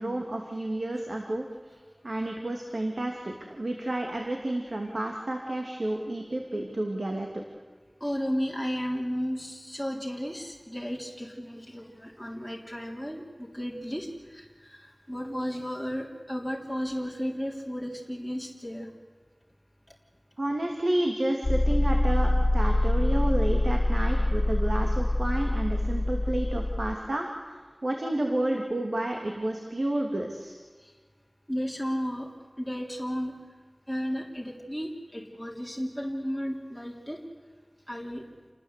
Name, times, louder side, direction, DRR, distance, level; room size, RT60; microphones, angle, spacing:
voice 1, 0.0-1.5 2.0-7.4 20.4-27.3 27.8-30.5, right 1 dB, 80° right, 2 dB, 2.7 m, -30 dB
voice 2, 8.0-18.9 30.8-30.9 31.5-32.3 32.6-33.4 33.9-37.2 37.9-38.3, equal, 5° left, -2 dB, 3.5 m, -34 dB
sound 1, 21.4-26.9, left 1 dB, 65° left, 1.9 m, -25 dB
29.0 x 20.0 x 8.3 m, 1.4 s
wide cardioid pair, 40°, 0 cm